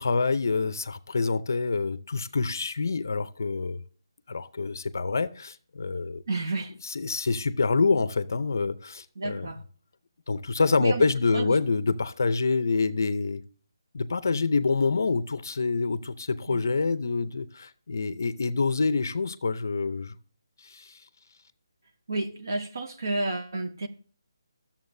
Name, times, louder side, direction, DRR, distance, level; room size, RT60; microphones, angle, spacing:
voice 1, 0.0-3.8 4.3-6.2 6.8-9.5 10.3-13.4 13.9-20.1 20.6-21.0, left 4 dB, 45° left, 0.6 m, -26 dB
voice 2, 6.3-6.7 9.2-9.6 10.8-11.5 16.5-16.6 22.1-23.9, right 2 dB, 50° right, 0.9 m, -31 dB
13.0 x 7.2 x 2.7 m
hypercardioid pair, 180°, 2 cm